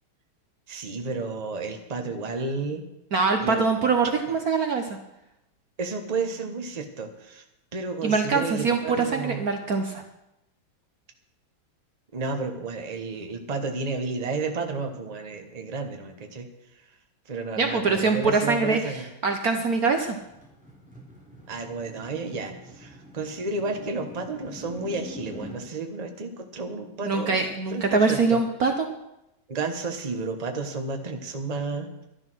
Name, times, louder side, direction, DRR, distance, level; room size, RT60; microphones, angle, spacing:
voice 1, 0.7-2.8 3.4-3.9 4.3-4.4 5.8-7.4 7.7-9.5 12.1-16.5 17.2-19.1 21.5-27.4 27.7-28.4 29.5-32.0, right 3 dB, 25° right, 5 dB, 1.2 m, -32 dB
voice 2, 3.1-5.0 8.0-10.0 17.6-18.8 19.2-20.2 27.0-28.9, right 4 dB, 55° right, 5 dB, 1.3 m, -23 dB
sound 1, 19.6-25.6, equal, 5° right, 3.5 m, -45 dB
12.0 x 11.5 x 6.2 m, 0.87 s
omnidirectional pair, 2.2 m